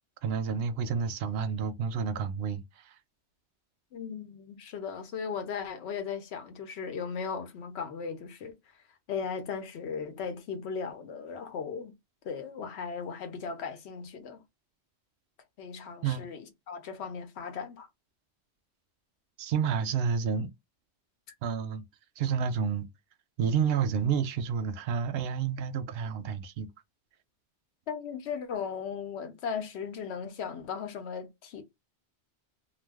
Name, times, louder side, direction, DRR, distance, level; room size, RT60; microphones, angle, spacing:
voice 1, 0.2-2.9 16.0-16.3 19.4-20.5 21.4-21.8 22.2-22.9 23.4-26.7, right 7 dB, 65° right, 0.7 m, -30 dB
voice 2, 3.9-8.5 9.1-11.9 12.2-14.4 15.6-17.9 27.9-31.6, left 6 dB, 70° left, 1.0 m, -37 dB
2.3 x 2.3 x 3.3 m
omnidirectional pair, 1.2 m